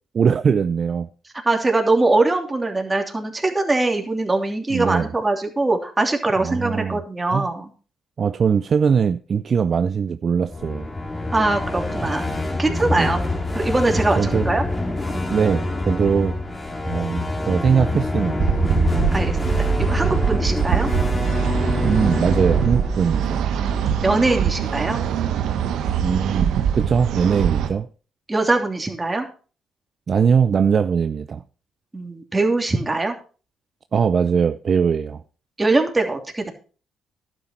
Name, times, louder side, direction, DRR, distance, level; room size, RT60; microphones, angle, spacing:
voice 1, 0.1-1.1 4.7-5.1 6.4-7.0 7.3-7.5 8.2-10.9 12.9-13.1 13.9-14.5 15.3-16.4 16.9-18.5 21.8-23.5 26.0-27.9 30.1-31.4 33.9-35.2, right 6 dB, 50° right, 0.5 m, -21 dB
voice 2, 1.4-7.7 11.3-12.2 12.6-13.2 13.5-14.6 19.1-20.9 23.7-25.0 28.3-29.3 31.9-33.1 35.6-36.5, right 2 dB, 20° right, 2.9 m, -22 dB
sound 1, 10.4-24.4, left 2 dB, 25° left, 2.6 m, -26 dB
sound 2, 18.4-27.7, right 8 dB, 75° right, 1.2 m, -23 dB
11.5 x 9.1 x 4.3 m
supercardioid pair, 55°, 0 cm